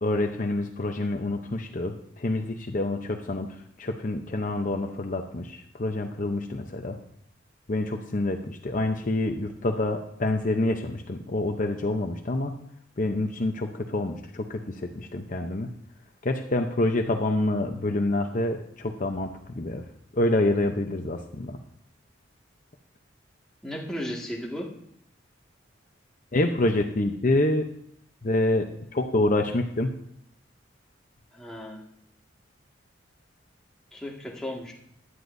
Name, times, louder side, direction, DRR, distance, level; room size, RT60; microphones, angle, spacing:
voice 1, 0.0-3.5 3.8-7.0 7.7-12.6 13.0-15.7 16.2-19.8 20.1-21.6 26.3-27.6 28.2-28.6 28.9-29.9, left 2 dB, 45° left, 4 dB, 0.7 m, -27 dB
voice 2, 23.6-24.7 31.3-31.8 33.9-34.7, equal, 5° left, -3 dB, 1.9 m, -35 dB
16.0 x 11.0 x 2.7 m, 0.70 s
head